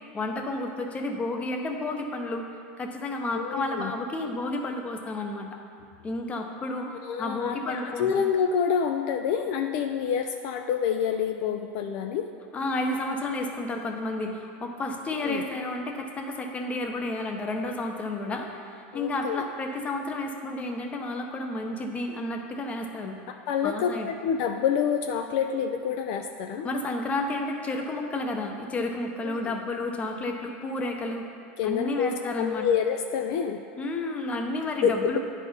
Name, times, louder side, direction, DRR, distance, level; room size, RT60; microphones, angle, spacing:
voice 1, 0.0-2.5 2.8-5.6 6.0-8.1 12.5-23.2 23.6-24.1 26.6-31.3 31.6-32.7 33.8-35.2, left 2 dB, 20° left, 3 dB, 0.8 m, -31 dB
voice 2, 3.3-3.9 7.0-12.3 15.2-15.4 18.9-19.4 23.5-26.7 29.2-29.5 31.6-33.6 34.8-35.2, left 7 dB, 55° left, 5 dB, 0.4 m, -27 dB
9.8 x 4.2 x 5.4 m, 2.3 s
supercardioid pair, 135°, 7 cm